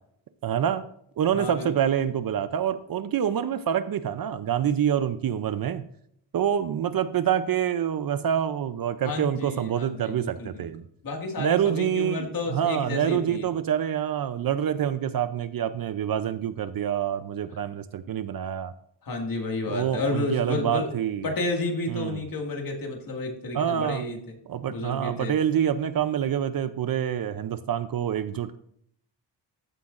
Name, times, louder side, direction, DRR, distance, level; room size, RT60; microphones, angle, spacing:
voice 1, 0.4-0.9 1.2-5.9 6.3-10.9 11.4-18.7 19.7-21.3 21.9-22.2 23.5-24.1 24.5-28.6, right 9 dB, 50° right, 13 dB, 0.5 m, -26 dB
voice 2, 1.3-1.7 9.0-10.6 11.0-13.5 19.0-20.9 21.2-24.2 24.7-25.4, left 2 dB, 45° left, 2 dB, 2.0 m, -31 dB
14.5 x 7.7 x 2.5 m, 0.68 s
wide cardioid pair, 125°, 46 cm